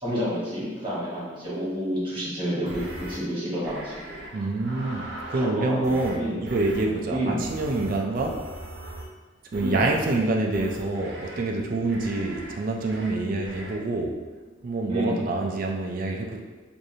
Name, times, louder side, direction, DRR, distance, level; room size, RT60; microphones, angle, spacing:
voice 1, 0.0-4.4 5.3-6.4 7.1-7.4 9.6-9.8 14.9-15.2, equal, 30° right, -8 dB, 1.4 m, -30 dB
sound 1, 2.7-3.2 3.6-4.3 4.6-5.5 5.8-6.2 6.5-6.8 7.4-9.1 9.5-10.2 10.5-11.4 11.9-12.5 12.8-13.1 13.4-13.7, right 1 dB, 65° right, 0.8 m, -40 dB
voice 2, 4.3-8.4 9.5-14.2 14.6-16.4, right 2 dB, 50° right, 1 dB, 0.4 m, -26 dB
4.8 x 2.6 x 2.7 m, 1.3 s
head